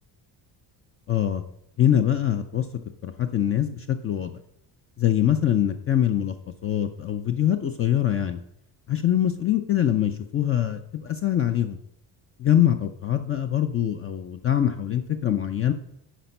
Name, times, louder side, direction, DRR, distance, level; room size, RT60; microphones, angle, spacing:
voice 1, 1.1-1.4 1.8-2.6 3.0-4.3 5.0-6.3 6.6-8.4 8.9-11.8 12.4-15.7, left 11 dB, 35° left, 8 dB, 0.4 m, -23 dB
10.0 x 5.1 x 5.4 m, 0.77 s
cardioid pair, 165°, 45 cm